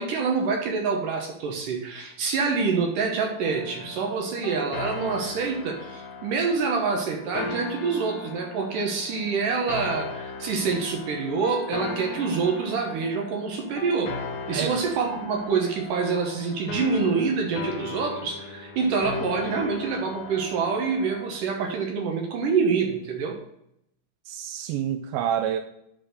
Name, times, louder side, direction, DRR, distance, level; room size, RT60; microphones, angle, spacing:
voice 1, 0.0-14.1 14.5-23.4, right 5 dB, 70° right, 2 dB, 2.4 m, -26 dB
sound 1, 3.4-21.4, left 3 dB, 70° left, 1.9 m, -37 dB
voice 2, 24.3-25.6, right 10 dB, 85° right, 6 dB, 2.4 m, -28 dB
7.9 x 4.2 x 6.6 m, 0.77 s
omnidirectional pair, 4.4 m